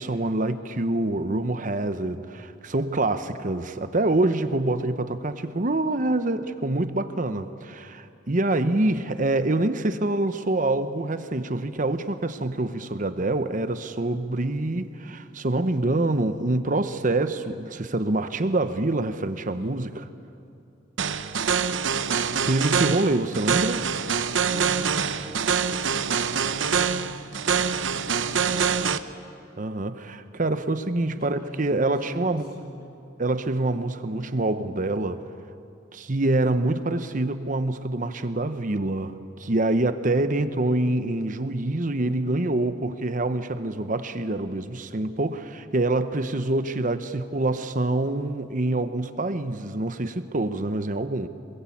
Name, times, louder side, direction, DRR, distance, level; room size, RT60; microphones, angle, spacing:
voice 1, 0.0-20.0 22.4-23.9 29.6-32.7 33.2-35.2 35.9-51.3, right 2 dB, 45° right, 11 dB, 0.9 m, -26 dB
sound 1, 21.0-29.0, right 6 dB, 80° right, 0.9 m, -25 dB
voice 2, 24.4-26.0 26.6-29.0 31.0-32.9, equal, 50° left, 0 dB, 6.8 m, -44 dB
26.5 x 21.5 x 8.6 m, 2.6 s
head